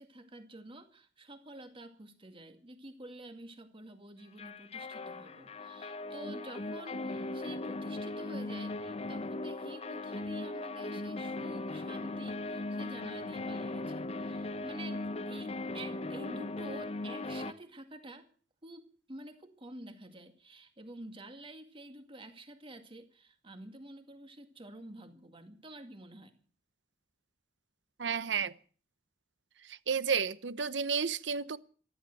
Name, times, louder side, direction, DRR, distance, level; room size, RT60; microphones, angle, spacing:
voice 1, 0.0-18.3 18.6-26.4, right 1 dB, 30° right, 2.1 m, -49 dB
sound 1, 4.4-17.5, left 2 dB, 35° left, 0.8 m, -38 dB
voice 2, 28.0-28.5 29.7-31.6, right 6 dB, 80° right, 0.9 m, -31 dB
14.0 x 13.5 x 7.8 m
head